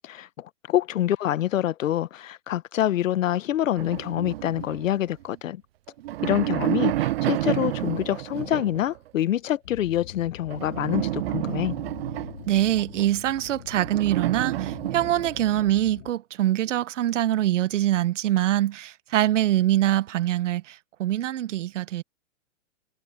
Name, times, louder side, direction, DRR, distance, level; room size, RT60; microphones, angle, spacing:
voice 1, 0.0-5.6 6.2-11.8, left 12 dB, 75° left, 1.1 m, -26 dB
sound 1, 3.8-5.4 5.9-9.0 10.5-13.1 13.7-15.7, right 15 dB, 50° right, 0.5 m, -30 dB
sound 2, 9.6-16.1, left 12 dB, 60° left, 2.0 m, -44 dB
voice 2, 12.5-22.0, right 13 dB, 65° right, 1.1 m, -24 dB
hypercardioid pair, 155°, 39 cm